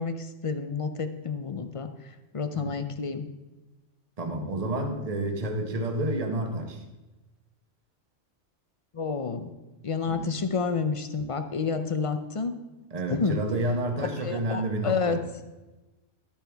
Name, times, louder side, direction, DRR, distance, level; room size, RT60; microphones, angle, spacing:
voice 1, 0.0-3.2 8.9-9.5 9.8-12.6 13.1-13.4 14.2-15.2, left 5 dB, 40° left, 9 dB, 0.5 m, -29 dB
voice 2, 4.2-6.8 10.1-10.4 12.9-15.2, right 1 dB, 30° right, 3 dB, 1.1 m, -30 dB
12.5 x 8.6 x 3.5 m, 1.1 s
omnidirectional pair, 1.3 m